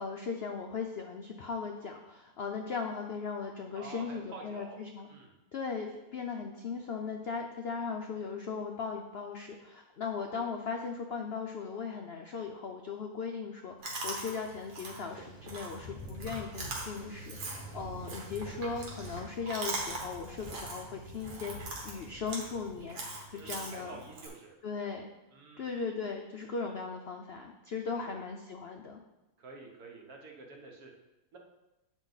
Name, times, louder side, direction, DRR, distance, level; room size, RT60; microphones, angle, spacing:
voice 1, 0.0-5.1 5.5-23.0 23.3-24.0 24.6-25.1 25.6-29.0, left 5 dB, 70° left, 3 dB, 0.6 m, -38 dB
voice 2, 3.7-4.8 5.1-5.3 23.3-24.6 25.3-25.7 28.0-28.2 29.4-30.9 31.3-31.4, right 3 dB, 65° right, 1 dB, 1.5 m, -48 dB
Chewing mastication, 13.8-24.3, right 2 dB, 85° right, 2.0 m, -42 dB
Thunder / Rain, 15.4-22.8, left 2 dB, 35° left, 0.7 m, -50 dB
8.4 x 4.9 x 4.0 m, 1.0 s
omnidirectional pair, 1.7 m